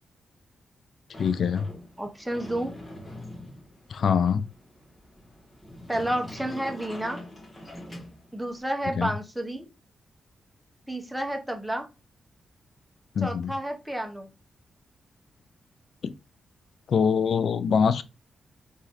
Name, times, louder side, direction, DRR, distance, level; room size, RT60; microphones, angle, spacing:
Sliding door, 1.1-8.6, left 1 dB, 25° left, 1.8 m, -44 dB
voice 1, 1.2-1.7 3.9-4.5 9.0-9.1 13.2-13.5 16.0-16.2 16.9-18.0, left 6 dB, 70° left, 0.3 m, -24 dB
voice 2, 2.0-2.8 5.9-7.2 8.3-9.7 10.9-11.8 13.2-14.3, right 1 dB, 5° right, 0.9 m, -30 dB
3.7 x 3.1 x 2.7 m
cardioid pair, 60°, 0 cm